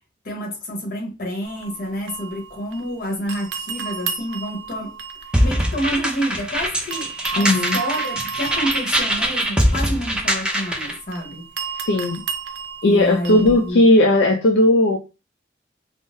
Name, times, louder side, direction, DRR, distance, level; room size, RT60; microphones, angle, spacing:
voice 1, 0.2-5.0 5.4-11.4 12.8-13.8, equal, 55° left, 1.1 m, -28 dB
sound 1, 1.4-2.9 3.3-6.5 6.9-13.7, right 7 dB, 85° right, 0.5 m, -33 dB
sound 2, 5.3-11.0, equal, 5° right, 0.5 m, -22 dB
voice 2, 7.4-7.8 11.9-12.2 12.8-15.0, left 1 dB, 75° left, 0.4 m, -16 dB
3.8 x 2.0 x 2.6 m
head